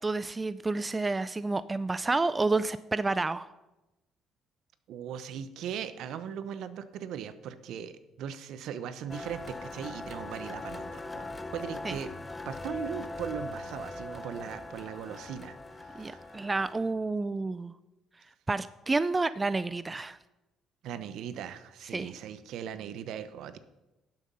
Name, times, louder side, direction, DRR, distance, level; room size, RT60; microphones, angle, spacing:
voice 1, 0.0-3.5 11.8-11.9 15.9-17.7 18.5-20.2 21.9-22.1, right 3 dB, 20° right, 15 dB, 0.4 m, -29 dB
voice 2, 4.9-12.1 12.4-16.4 20.8-23.6, right 8 dB, 70° right, 13 dB, 0.8 m, -39 dB
sound 1, 9.1-16.9, left 2 dB, 15° left, 0.7 m, -41 dB
11.5 x 7.5 x 5.6 m, 1.0 s
supercardioid pair, 85°, 0 cm